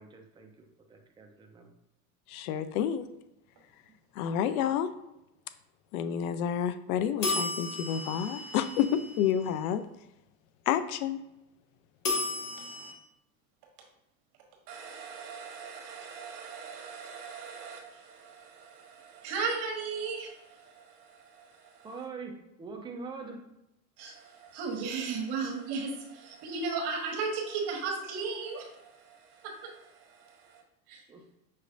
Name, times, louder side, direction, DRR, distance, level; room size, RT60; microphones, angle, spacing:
voice 1, 0.0-1.7 21.8-23.4 31.1-31.2, right 4 dB, 10° right, 2 dB, 0.6 m, -43 dB
voice 2, 2.3-3.1 4.2-4.9 5.9-9.8 10.7-11.2, left 9 dB, 65° left, 11 dB, 0.5 m, -29 dB
sound 1, 7.2-9.4 12.0-12.9, left 2 dB, 40° left, 1.3 m, -34 dB
voice 3, 14.7-21.9 24.0-30.6 30.9-31.0, right 4 dB, 50° right, 1 dB, 1.3 m, -37 dB
5.7 x 3.2 x 2.5 m, 0.88 s
hypercardioid pair, 90°, 47 cm